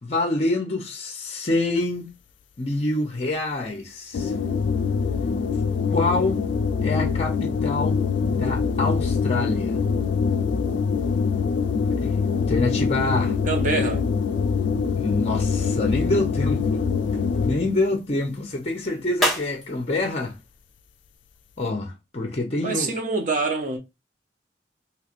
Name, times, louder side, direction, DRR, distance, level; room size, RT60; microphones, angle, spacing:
voice 1, 0.0-2.0 2.6-4.3 5.9-6.4 6.8-8.0 8.3-9.8 12.0-12.1 12.5-13.3 14.9-16.8 17.4-20.3 21.6-22.9, left 2 dB, 35° left, 0.6 m, -26 dB
sound 1, 4.1-17.8, left 5 dB, 90° left, 0.3 m, -24 dB
voice 2, 13.4-14.1 22.6-23.8, right 3 dB, 45° right, 0.7 m, -25 dB
sound 2, 19.1-21.5, equal, ahead, 1.0 m, -34 dB
3.2 x 2.9 x 2.4 m
head